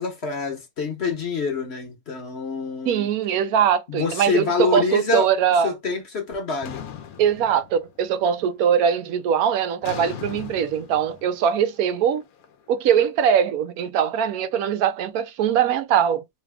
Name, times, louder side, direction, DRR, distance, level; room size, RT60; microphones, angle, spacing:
voice 1, 0.0-3.1 3.9-5.3 5.6-6.8, left 5 dB, 50° left, 1.2 m, -26 dB
voice 2, 2.9-5.7 7.2-12.2 12.7-16.2, right 8 dB, 80° right, 1.1 m, -21 dB
sound 1, 6.6-8.2 8.5-8.9 9.8-12.9, left 9 dB, 75° left, 1.1 m, -39 dB
3.3 x 2.2 x 3.4 m
omnidirectional pair, 1.5 m